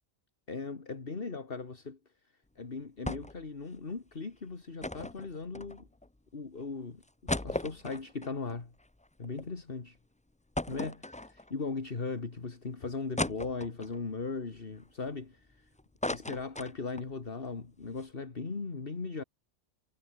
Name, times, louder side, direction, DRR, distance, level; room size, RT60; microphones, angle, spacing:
voice 1, 0.5-2.0 2.6-5.9 6.3-8.7 9.2-10.0 10.7-15.7 16.1-19.2, left 4 dB, 50° left, 2.2 m, -38 dB
sound 1, 3.0-3.5 3.8-3.9 4.8-6.1 6.6-6.7 7.0-9.5 9.9-10.0 10.5-11.7 12.2-12.3 13.2-14.0 14.6-15.5 15.8-17.1 17.5-17.6 17.8-18.1, left 2 dB, 10° left, 0.3 m, -37 dB
omnidirectional pair, 1.2 m